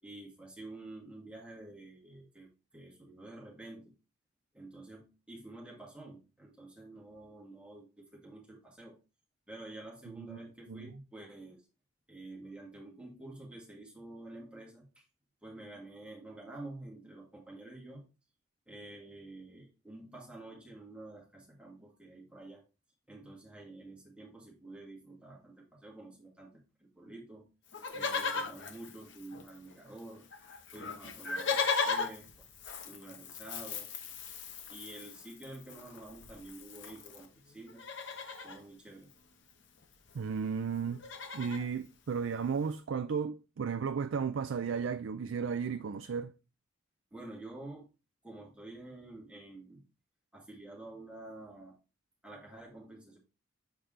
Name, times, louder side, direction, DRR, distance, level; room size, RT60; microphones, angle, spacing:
voice 1, 0.0-3.9 4.5-9.0 9.5-11.6 12.1-15.1 15.4-18.0 18.7-22.6 23.1-27.5 27.9-30.2 30.7-32.5 32.8-33.9 34.7-37.8 38.4-39.1 47.1-47.9 48.2-49.8 50.3-51.8 52.2-53.2, right 2 dB, 5° right, 2.2 m, -49 dB
Livestock farm animals working animals, 27.7-29.7 30.0-30.1 30.3-37.3 37.7-38.6 39.8-39.9 40.1-40.4 40.7-41.7 42.3-42.4, left 5 dB, 60° left, 1.0 m, -37 dB
voice 2, 40.1-41.0 41.3-46.3, right 6 dB, 65° right, 0.4 m, -34 dB
7.2 x 5.1 x 3.3 m
head